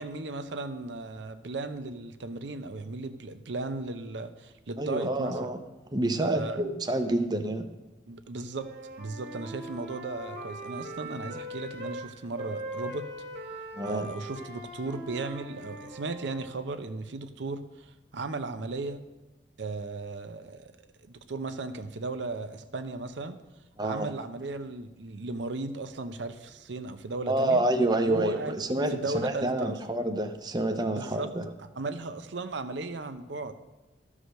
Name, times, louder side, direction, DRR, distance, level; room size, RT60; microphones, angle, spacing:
voice 1, 0.0-5.4 6.2-6.6 8.1-8.7 9.0-13.0 13.8-19.0 19.6-20.7 21.0-23.4 23.8-27.6 28.1-28.6 28.9-29.8 30.9-31.3 31.8-33.5, right 3 dB, 70° right, 9 dB, 0.7 m, -36 dB
voice 2, 4.8-5.6 5.9-7.7 13.8-14.1 23.8-24.1 27.3-31.5, right 1 dB, 20° right, 6 dB, 0.6 m, -28 dB
Wind instrument woodwind instrument, 8.5-12.1 12.4-16.6, right 1 dB, 55° right, 2.0 m, -41 dB
12.5 x 4.9 x 6.4 m, 1.1 s
head